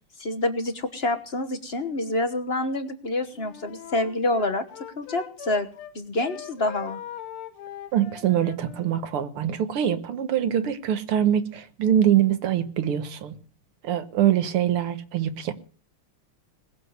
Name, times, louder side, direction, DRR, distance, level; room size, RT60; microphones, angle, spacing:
voice 1, 0.2-4.6 5.0-5.7 5.9-7.0, left 2 dB, 35° left, 1.2 m, -27 dB
Wind instrument woodwind instrument, 3.3-5.9 6.2-9.0, left 9 dB, 75° left, 2.0 m, -41 dB
voice 2, 7.9-13.4 13.8-15.5, right 10 dB, 80° right, 2.1 m, -24 dB
20.5 x 7.8 x 8.0 m
omnidirectional pair, 2.4 m